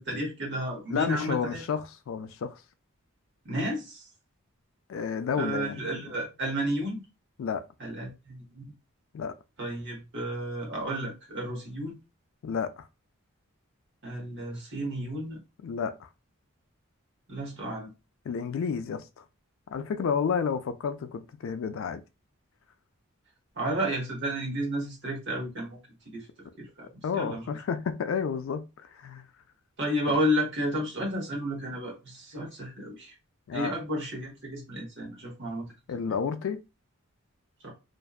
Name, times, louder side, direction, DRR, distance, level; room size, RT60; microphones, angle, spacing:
voice 1, 0.0-1.6 3.4-4.1 5.3-7.0 7.8-8.7 9.6-12.0 14.0-15.4 17.3-17.9 23.5-25.8 26.1-26.9 27.1-27.4 29.8-33.1 33.5-36.2 37.6-37.7, equal, 55° right, 0.9 m, -32 dB
voice 2, 0.9-2.6 4.9-6.0 7.4-7.6 9.1-9.3 12.4-12.9 15.6-16.1 18.3-19.2 19.7-22.0 27.0-29.3 33.5-33.7 35.9-36.6, left 6 dB, 65° left, 0.3 m, -31 dB
2.6 x 2.2 x 2.3 m
head